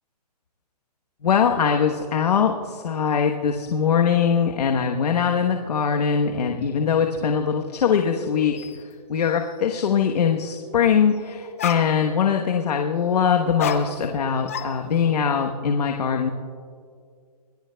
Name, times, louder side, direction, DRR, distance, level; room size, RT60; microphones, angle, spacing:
voice 1, 1.2-8.5 9.1-16.3, left 7 dB, 70° left, 3 dB, 1.1 m, -22 dB
sound 1, 8.6-8.8 9.2-9.7 11.2-11.3 11.6-12.3 13.6-14.2 14.5-15.2, left 8 dB, 20° left, 0.5 m, -31 dB
25.0 x 19.0 x 2.3 m, 2.2 s
hypercardioid pair, 180°, 21 cm